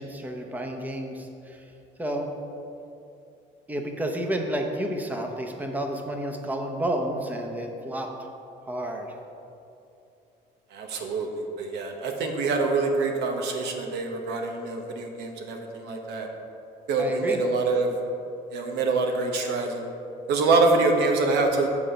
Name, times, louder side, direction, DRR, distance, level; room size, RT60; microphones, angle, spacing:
voice 1, 0.0-1.6 2.0-2.3 3.7-8.1 8.7-9.1 17.0-17.4, right 1 dB, 10° right, 3 dB, 0.8 m, -30 dB
voice 2, 10.7-11.3 11.6-16.3 16.9-17.9 18.5-19.9 20.3-21.7, right 3 dB, 80° right, 3 dB, 1.1 m, -25 dB
8.3 x 3.9 x 6.8 m, 2.7 s
cardioid pair, 110°, 17 cm